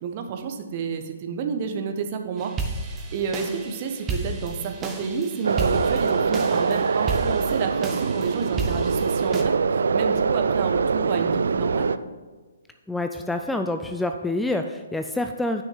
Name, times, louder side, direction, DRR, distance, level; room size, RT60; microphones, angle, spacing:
voice 1, 0.0-2.5 2.8-11.9, right 6 dB, 40° right, 5 dB, 1.1 m, -30 dB
sound 1, 2.4-9.4, right 3 dB, 20° right, 1.1 m, -32 dB
sound 2, 5.4-12.0, right 5 dB, 70° right, 0.4 m, -23 dB
voice 2, 12.9-15.6, left 2 dB, 5° left, 6 dB, 0.4 m, -27 dB
9.2 x 6.3 x 5.6 m, 1.3 s
figure-of-eight pair, 130°, 0 cm